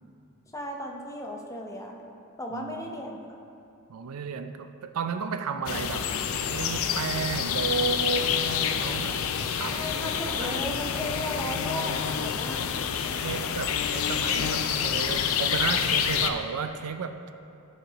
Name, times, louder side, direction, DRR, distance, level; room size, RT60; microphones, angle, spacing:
voice 1, 0.5-2.0 2.4-3.2 9.7-12.6, left 1 dB, 15° left, 1 dB, 0.6 m, -35 dB
voice 2, 2.5-3.0 3.9-6.1 6.5-8.4 8.8-9.2 9.5-9.8 10.4-10.7 13.2-17.2, right 5 dB, 90° right, 9 dB, 0.4 m, -33 dB
sound 1, 5.7-16.3, left 7 dB, 65° left, 0.4 m, -28 dB
9.1 x 5.7 x 4.0 m, 2.6 s
head